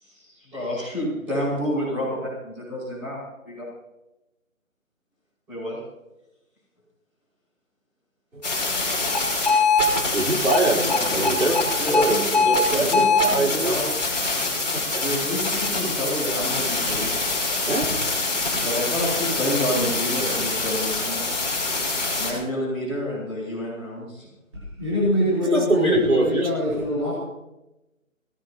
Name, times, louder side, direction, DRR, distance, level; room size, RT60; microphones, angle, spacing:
voice 1, 0.0-3.2 3.4-3.6 5.5-5.8 10.6-11.5 11.8-13.0 13.3-13.9 15.0-17.4 18.6-21.2 22.2-24.3, equal, 5° right, -15 dB, 6.1 m, -29 dB
sound 1, 8.4-22.3, left 3 dB, 30° left, 5.6 m, -24 dB
voice 2, 10.1-11.6 11.9-13.8 14.7-15.0 17.7-18.0 25.4-26.5, right 2 dB, 85° right, -3 dB, 4.8 m, -24 dB
voice 3, 24.8-27.1, left 1 dB, 20° right, -9 dB, 3.2 m, -23 dB
22.5 x 18.5 x 3.0 m, 0.96 s
figure-of-eight pair, 180°, 41 cm